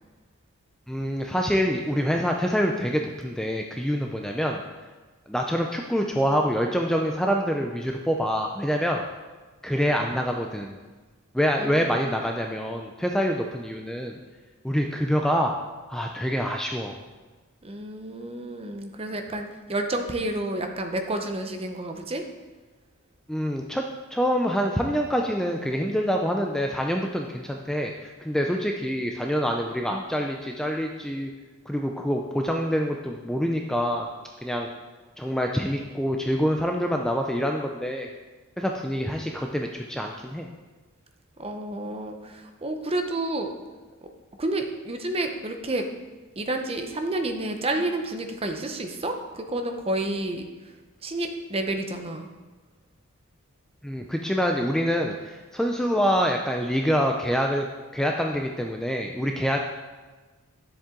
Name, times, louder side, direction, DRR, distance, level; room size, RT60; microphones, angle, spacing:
voice 1, 0.9-4.6 5.3-9.0 9.6-10.8 11.3-14.2 14.6-15.5 15.9-17.0 23.3-23.8 24.1-31.3 31.7-34.1 34.4-34.7 35.2-38.1 38.6-40.5 53.8-57.7 57.9-59.6, equal, 5° left, 2 dB, 0.4 m, -26 dB
voice 2, 11.6-12.1 17.6-22.2 41.4-43.6 44.4-45.9 46.4-50.4 51.0-52.3, right 2 dB, 25° right, 5 dB, 0.7 m, -30 dB
10.5 x 7.3 x 3.7 m, 1.3 s
head